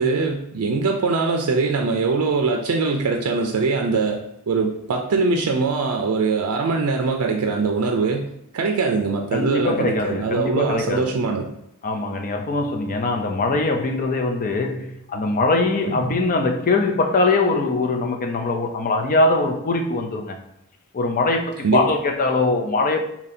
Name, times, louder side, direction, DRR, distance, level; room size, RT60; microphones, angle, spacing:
voice 1, 0.0-11.5 15.8-16.0 21.6-21.8, right 4 dB, 75° right, 0.4 m, -22 dB
voice 2, 9.3-11.2 11.8-20.4 20.9-23.0, left 3 dB, 40° left, 0.4 m, -22 dB
2.8 x 2.7 x 4.1 m
head